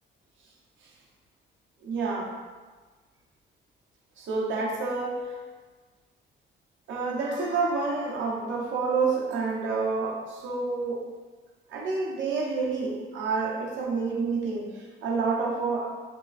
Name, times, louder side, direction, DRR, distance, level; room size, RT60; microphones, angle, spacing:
voice 1, 1.8-2.3 4.2-5.4 6.9-11.0 11.7-15.9, right 4 dB, 75° right, -2 dB, 0.6 m, -28 dB
2.8 x 2.3 x 2.4 m, 1.4 s
cardioid pair, 90°, 20 cm